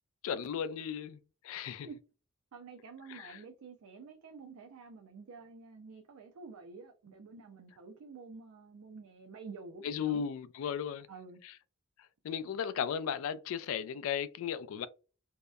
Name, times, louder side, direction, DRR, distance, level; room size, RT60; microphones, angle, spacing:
voice 1, 0.2-1.2 1.4-1.9 3.1-3.4 9.8-11.1 11.4-11.5 12.2-14.9, left 8 dB, 70° left, 0.3 m, -35 dB
voice 2, 2.5-10.2 11.1-11.4, right 4 dB, 90° right, 0.4 m, -49 dB
2.7 x 2.0 x 2.3 m
head